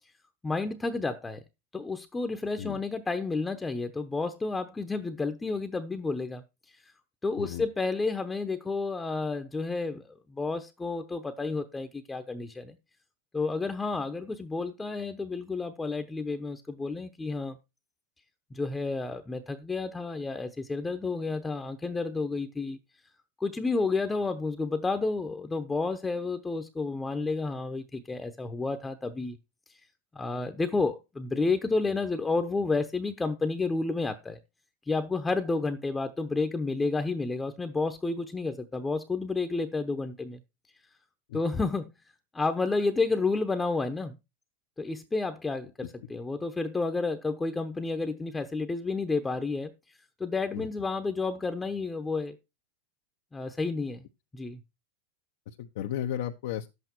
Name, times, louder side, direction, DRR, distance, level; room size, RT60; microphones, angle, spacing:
voice 1, 0.4-1.4 1.7-6.4 7.2-12.8 13.3-17.6 18.5-22.8 23.4-29.4 30.1-34.4 34.9-40.4 41.3-41.9 42.3-44.2 44.8-49.7 50.2-52.4 53.3-54.0 54.3-54.6, left 3 dB, 10° left, 0.9 m, -30 dB
voice 2, 55.5-56.7, left 10 dB, 70° left, 1.0 m, -34 dB
10.5 x 8.2 x 4.5 m
supercardioid pair, 135°, 0 cm